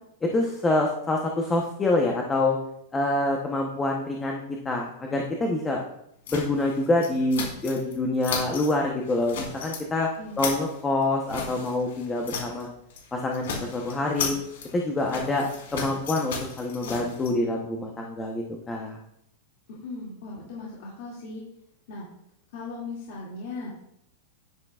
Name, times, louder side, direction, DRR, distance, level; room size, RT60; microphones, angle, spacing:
voice 1, 0.2-2.6 2.9-5.8 6.3-10.1 10.4-12.7 13.1-14.3 14.7-15.5 15.7-19.0, left 2 dB, 10° left, 0 dB, 0.8 m, -26 dB
sound 1, 6.3-7.9 8.2-8.7 9.1-9.8 10.1-12.6 12.9-13.1 13.3-17.3, left 5 dB, 75° left, 3.8 m, -35 dB
voice 2, 10.2-10.5 19.7-21.4 21.9-22.1 22.5-23.7, left 3 dB, 50° left, -5 dB, 2.3 m, -38 dB
10.5 x 9.9 x 2.4 m, 0.77 s
supercardioid pair, 165°, 0 cm